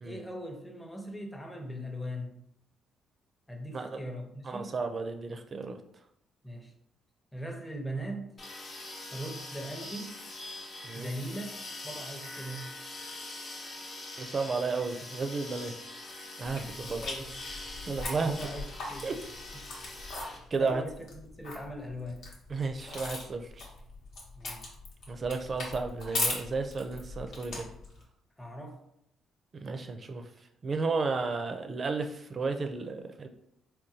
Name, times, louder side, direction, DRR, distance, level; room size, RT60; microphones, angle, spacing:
voice 1, 0.0-2.4 3.5-4.7 6.4-6.7 7.3-8.3 9.1-10.2 10.9-11.6 11.8-12.6 16.8-17.4 18.2-19.1 20.5-21.0 21.4-22.3 24.4-24.7 28.4-28.8, equal, 15° left, 3 dB, 0.6 m, -40 dB
voice 2, 4.4-5.8 10.8-11.1 14.2-15.7 16.4-17.0 17.9-18.3 19.0-19.2 20.2-20.8 22.5-23.5 25.1-27.7 29.6-30.2 30.6-33.3, right 4 dB, 40° right, 6 dB, 0.4 m, -33 dB
sound 1, 8.4-20.4, left 2 dB, 45° left, 0.8 m, -43 dB
sound 2, 16.4-28.0, left 2 dB, 70° left, 1.0 m, -39 dB
3.7 x 2.2 x 2.7 m, 0.76 s
cardioid pair, 80°, 0 cm